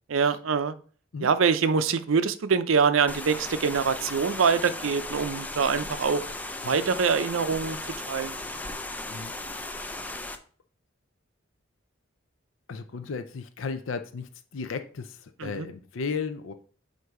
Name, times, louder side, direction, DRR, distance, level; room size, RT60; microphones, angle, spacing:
voice 1, 0.1-0.8 1.2-6.2 6.6-7.8 8.1-8.4 15.4-15.7, right 5 dB, 80° right, 13 dB, 0.5 m, -24 dB
sound 1, 3.1-10.4, left 2 dB, 10° left, 0.5 m, -36 dB
voice 2, 12.7-16.5, left 5 dB, 75° left, 9 dB, 0.5 m, -35 dB
7.8 x 2.7 x 4.7 m, 0.43 s
head